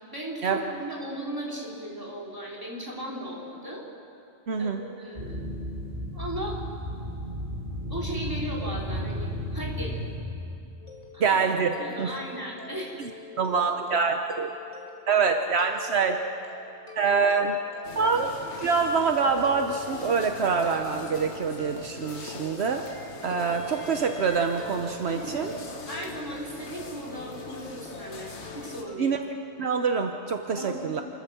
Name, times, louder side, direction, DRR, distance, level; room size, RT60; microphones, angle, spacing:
voice 1, 0.1-3.8 4.6-5.4 6.1-6.6 7.7-10.0 11.1-11.4 11.8-13.0 25.1-25.6 25.8-28.3 28.5-29.1 30.6-30.8, right 1 dB, 20° right, -4 dB, 3.9 m, -36 dB
voice 2, 4.5-4.8 11.2-11.7 12.0-12.1 13.4-14.5 15.1-16.2 17.0-17.6 18.0-18.3 18.6-22.9 23.2-25.5 29.0-29.2 29.6-31.0, right 5 dB, 70° right, 5 dB, 1.1 m, -25 dB
sound 1, 5.1-10.2, equal, 45° right, 6.7 m, -33 dB
sound 2, 10.8-29.0, left 3 dB, 35° left, 2.6 m, -46 dB
sound 3, 17.8-28.8, left 4 dB, 85° left, 1.7 m, -42 dB
28.0 x 13.5 x 7.1 m, 2.6 s
omnidirectional pair, 1.1 m